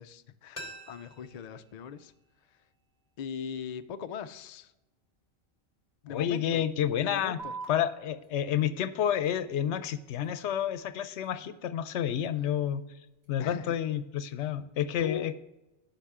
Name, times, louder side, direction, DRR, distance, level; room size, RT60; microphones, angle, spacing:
voice 1, 0.0-2.1 2.5-2.6 3.2-4.7 6.1-6.7 7.0-7.5 13.4-13.8 14.4-14.5 15.0-15.3, left 7 dB, 60° left, 10 dB, 0.4 m, -40 dB
sound 1, 0.5-3.3 3.6-3.7, equal, 30° left, 1.0 m, -49 dB
voice 2, 6.0-7.4 7.7-12.8 13.3-15.3, left 10 dB, 80° left, 13 dB, 0.9 m, -30 dB
sound 2, 7.4-14.4, right 4 dB, 65° right, 2.2 m, -50 dB
10.0 x 5.7 x 3.6 m, 0.99 s
omnidirectional pair, 1.2 m